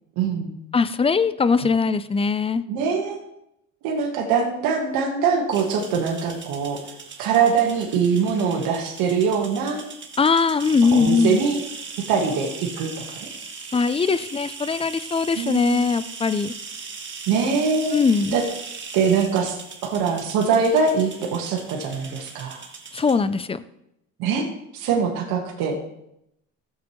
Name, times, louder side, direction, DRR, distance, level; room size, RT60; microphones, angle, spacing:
voice 1, 0.2-0.6 2.7-3.2 3.8-6.8 7.2-9.8 10.9-11.6 12.1-12.9 13.2-13.3 15.3-15.9 17.3-18.0 18.3-18.4 18.9-19.6 19.8-22.6 24.2-24.5 24.7-25.8, right 5 dB, 90° right, 0 dB, 1.6 m, -23 dB
voice 2, 0.7-2.6 10.2-11.4 13.7-16.5 17.9-18.4 22.9-23.6, left 5 dB, 15° left, 14 dB, 0.5 m, -21 dB
sound 1, 5.5-23.2, right 5 dB, 35° right, 1.7 m, -39 dB
15.5 x 7.4 x 3.2 m, 0.82 s
cardioid pair, 100°, 35 cm